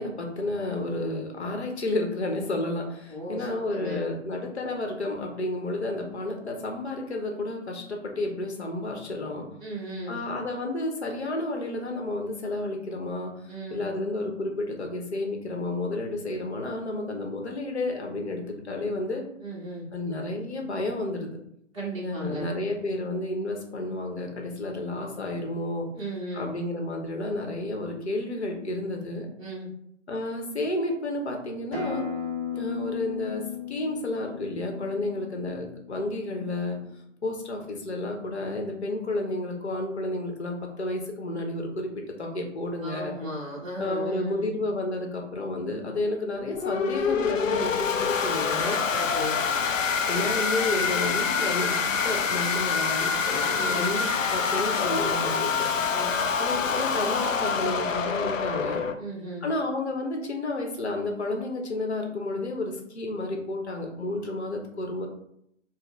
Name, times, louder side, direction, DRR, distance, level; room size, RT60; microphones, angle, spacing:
voice 1, 0.0-9.5 10.1-13.3 13.7-19.2 19.9-21.4 22.0-25.9 26.3-29.3 30.1-32.0 32.5-36.8 37.2-43.1 43.8-48.8 50.1-55.7 56.4-58.8 59.4-65.1, left 2 dB, 55° left, 2 dB, 0.9 m, -31 dB
voice 2, 3.1-4.1 9.6-10.2 13.5-13.9 19.4-19.9 21.7-22.5 25.9-26.5 29.4-29.7 42.8-44.5 48.9-49.4 53.6-53.9 55.9-56.2 59.0-59.5, equal, 25° right, -9 dB, 0.8 m, -36 dB
Acoustic guitar, 31.7-36.9, left 7 dB, 25° left, 0.9 m, -36 dB
sound 1, 46.3-58.9, left 5 dB, 75° left, 0.5 m, -26 dB
4.1 x 2.1 x 3.1 m, 0.74 s
figure-of-eight pair, 150°, 39 cm